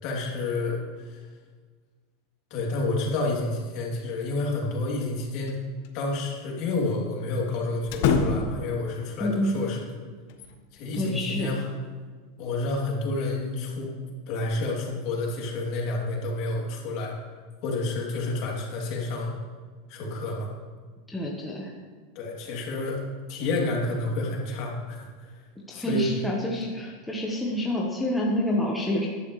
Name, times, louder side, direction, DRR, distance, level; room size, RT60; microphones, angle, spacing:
voice 1, 0.0-1.2 2.5-5.6 5.9-9.9 10.7-11.6 12.4-13.9 14.3-17.1 17.6-19.3 19.9-20.5 22.1-23.0 23.3-25.4 25.7-26.1, left 2 dB, 45° left, -2 dB, 2.9 m, -29 dB
sound 1, 4.9-5.6 5.8-5.9 7.9-8.7 10.3-11.2, left 5 dB, 65° left, 1.3 m, -27 dB
voice 2, 9.2-9.5 10.9-11.5 21.1-21.7 25.7-29.1, left 1 dB, 5° left, -3 dB, 1.3 m, -28 dB
15.0 x 11.0 x 3.3 m, 1.5 s
supercardioid pair, 155°, 0 cm